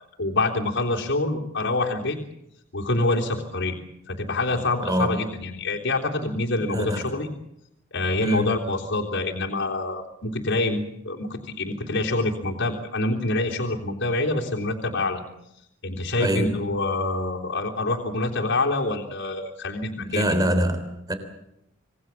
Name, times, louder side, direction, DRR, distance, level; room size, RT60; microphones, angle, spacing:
voice 1, 0.2-2.2 2.7-3.8 4.1-7.3 7.9-15.2 15.8-20.3, left 2 dB, 65° left, 0 dB, 3.5 m, -26 dB
voice 2, 6.7-7.1 8.2-8.5 16.2-16.6 20.0-21.1, equal, 20° right, 8 dB, 3.6 m, -24 dB
26.5 x 19.0 x 7.3 m, 0.80 s
head